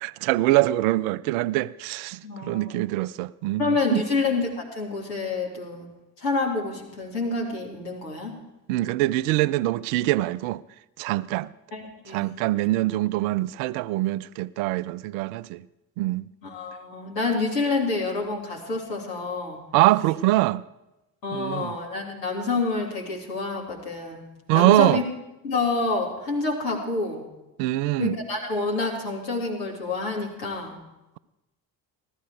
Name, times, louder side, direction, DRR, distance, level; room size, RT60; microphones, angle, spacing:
voice 1, 0.0-4.0 8.7-10.6 11.0-11.5 12.1-15.6 16.0-16.3 19.7-20.6 21.3-21.7 24.5-25.0 27.6-28.2, right 17 dB, 60° right, 0.5 m, -23 dB
voice 2, 2.2-2.7 3.6-5.9 6.2-8.3 11.7-12.2 16.4-19.6 21.2-24.2 24.5-25.0 25.4-27.3 28.0-30.8, left 3 dB, 80° left, 2.7 m, -28 dB
15.5 x 13.0 x 4.7 m
figure-of-eight pair, 50°, 49 cm